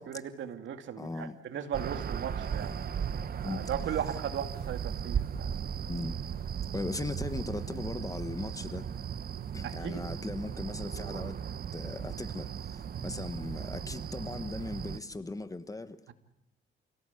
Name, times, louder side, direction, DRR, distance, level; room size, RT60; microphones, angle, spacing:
voice 1, 0.0-2.7 3.3-5.7 9.6-10.0, right 9 dB, 70° right, 2.4 m, -37 dB
voice 2, 1.0-1.4 3.4-3.7 5.8-6.2 6.7-8.9 9.5-11.4 11.7-16.0, left 2 dB, 15° left, 1.3 m, -38 dB
sound 1, 1.7-15.0, right 8 dB, 50° right, 1.1 m, -36 dB
29.0 x 17.0 x 8.4 m
cardioid pair, 90°, 20 cm